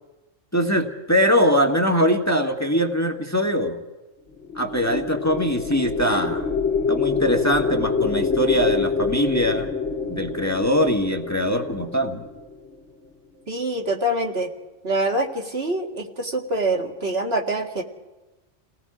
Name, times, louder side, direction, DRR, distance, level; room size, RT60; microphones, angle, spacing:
voice 1, 0.5-3.8 4.5-6.5 6.9-9.7 10.1-12.3, equal, 15° left, 3 dB, 1.5 m, -22 dB
sound 1, 4.3-12.7, left 4 dB, 70° left, 2.4 m, -26 dB
voice 2, 13.5-14.5 14.8-17.8, right 1 dB, 55° right, 1 dB, 2.2 m, -25 dB
29.5 x 18.0 x 5.0 m, 1.1 s
omnidirectional pair, 1.3 m